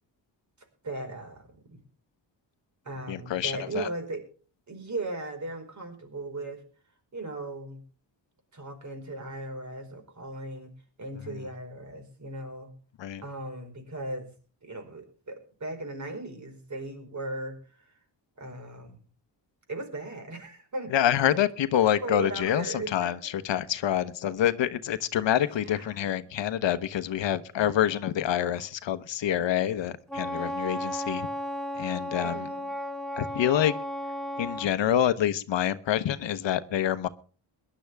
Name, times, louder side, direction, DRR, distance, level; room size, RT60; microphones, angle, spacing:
voice 1, 0.8-1.8 2.8-4.2 4.7-6.6 7.1-7.8 8.5-10.7 11.0-12.7 13.2-14.3 14.6-17.9 18.4-19.0 19.7-21.0 21.8-23.1 25.6-26.0 27.6-27.8 32.2-32.7, right 2 dB, 40° right, 5 dB, 4.7 m, -37 dB
voice 2, 3.1-3.9 11.2-11.4 13.0-13.2 20.9-31.3 31.8-32.5 33.2-33.7 34.4-37.1, left 11 dB, 90° left, 12 dB, 1.1 m, -27 dB
Wind instrument woodwind instrument, 30.1-34.7, equal, ahead, 1.0 m, -34 dB
22.0 x 11.5 x 3.5 m, 0.38 s
wide cardioid pair, 135°, 43 cm